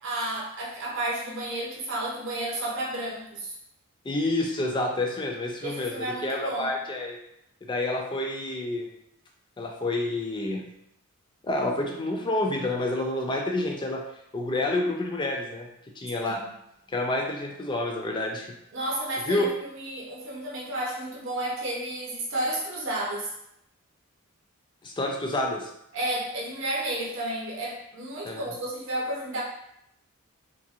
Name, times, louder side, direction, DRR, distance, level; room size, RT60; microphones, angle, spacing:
voice 1, 0.0-3.5 5.6-6.7 16.2-16.4 18.7-23.3 25.9-29.4, right 1 dB, 60° right, -4 dB, 0.7 m, -32 dB
voice 2, 4.1-7.2 7.7-8.9 9.6-10.6 11.4-14.0 14.3-15.7 16.0-16.4 16.9-18.4 19.3-19.5 24.8-25.7 28.2-28.5, left 2 dB, 20° left, 1 dB, 0.3 m, -28 dB
2.8 x 2.5 x 2.3 m, 0.77 s
head